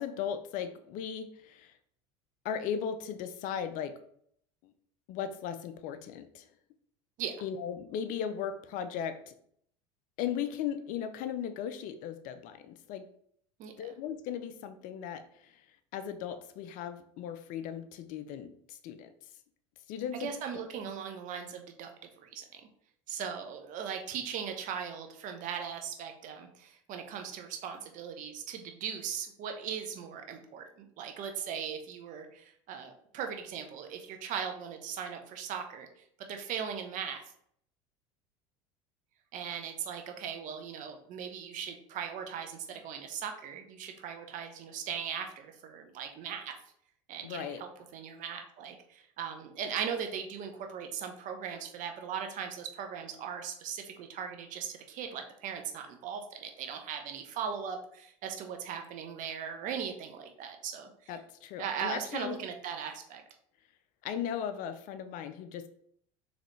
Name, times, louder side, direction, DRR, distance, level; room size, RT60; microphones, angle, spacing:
voice 1, 0.0-1.7 2.4-4.0 4.6-4.7 5.1-6.4 7.4-9.3 10.2-13.1 13.8-15.6 15.9-19.1 19.9-20.3 47.2-47.6 61.1-62.4 64.0-65.7, left 8 dB, 55° left, 10 dB, 0.5 m, -37 dB
voice 2, 13.6-13.9 20.2-21.9 22.2-22.4 23.1-35.9 36.3-37.2 39.3-46.5 47.1-61.1 61.6-63.2, right 7 dB, 50° right, 5 dB, 0.8 m, -39 dB
4.0 x 3.2 x 3.1 m, 0.66 s
hypercardioid pair, 80°, 16 cm